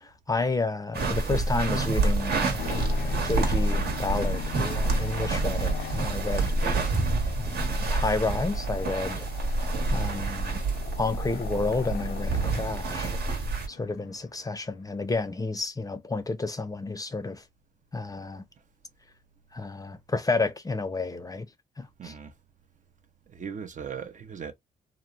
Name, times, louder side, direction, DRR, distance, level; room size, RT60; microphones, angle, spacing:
voice 1, 0.0-6.6 7.4-9.3 9.9-10.6 11.0-13.1 13.7-17.4 17.9-18.4 19.5-21.5 21.8-22.1, left 3 dB, 20° left, 0.5 m, -31 dB
sound 1, 0.9-13.7, right 3 dB, 65° right, 1.1 m, -28 dB
sound 2, 2.6-14.7, left 10 dB, 75° left, 0.5 m, -41 dB
voice 2, 22.0-22.3 23.3-24.5, right 7 dB, 45° right, 0.6 m, -38 dB
2.9 x 2.0 x 2.4 m
cardioid pair, 70°, 17 cm